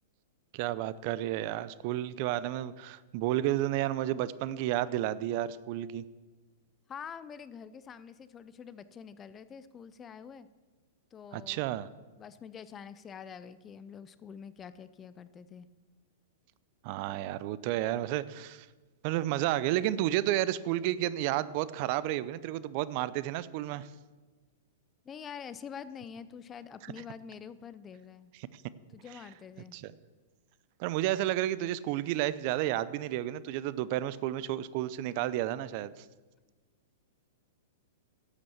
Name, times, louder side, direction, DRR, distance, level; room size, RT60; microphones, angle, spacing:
voice 1, 0.5-6.0 11.3-11.9 16.8-18.7 19.0-23.9 26.8-27.0 28.3-28.6 29.1-29.2 29.7-29.9 30.8-36.1, right 14 dB, 45° right, 17 dB, 0.5 m, -31 dB
voice 2, 6.9-10.5 11.1-11.7 12.2-15.7 25.0-28.3 28.9-29.8, left 7 dB, 20° left, 14 dB, 0.5 m, -46 dB
11.0 x 8.1 x 7.1 m, 1.3 s
hypercardioid pair, 130°, 0 cm